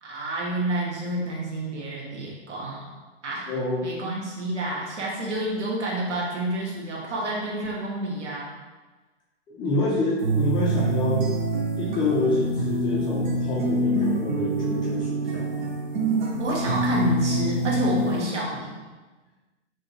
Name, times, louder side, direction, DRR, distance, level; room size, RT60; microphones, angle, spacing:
voice 1, 0.0-2.8 3.2-3.5 3.8-8.5 16.4-18.7, right 2 dB, 70° right, -4 dB, 1.4 m, -29 dB
voice 2, 3.5-3.8 9.5-11.3 11.7-15.7, left 2 dB, 15° left, -6 dB, 0.5 m, -27 dB
sound 1, 10.2-18.2, right 1 dB, 40° right, 0.8 m, -25 dB
4.8 x 2.8 x 2.9 m, 1.3 s
figure-of-eight pair, 115°, 36 cm